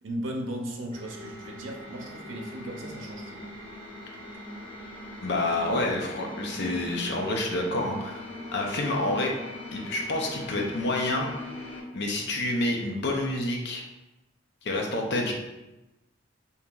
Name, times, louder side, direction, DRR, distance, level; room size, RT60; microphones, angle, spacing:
voice 1, 0.0-3.5, right 1 dB, 75° right, 0 dB, 0.6 m, -36 dB
sound 1, 0.9-11.8, left 1 dB, 25° left, 1.4 m, -41 dB
voice 2, 5.2-8.3 8.5-9.3 9.7-11.3 11.9-13.8 14.6-15.3, left 2 dB, 60° left, 1 dB, 0.6 m, -28 dB
2.9 x 2.7 x 3.7 m, 1.0 s
head